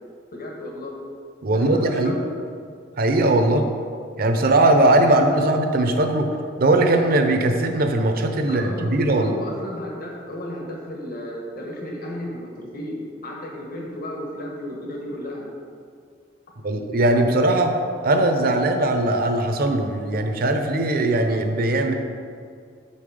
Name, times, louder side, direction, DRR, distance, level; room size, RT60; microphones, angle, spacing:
voice 1, 0.3-1.0 1.5-2.2 8.4-15.5, left 1 dB, 55° left, -1 dB, 1.3 m, -33 dB
voice 2, 1.4-2.2 3.0-3.7 4.2-6.3 6.6-9.3 16.6-17.8 18.0-21.9, right 2 dB, 55° right, 5 dB, 0.8 m, -19 dB
7.3 x 5.6 x 5.0 m, 2.3 s
head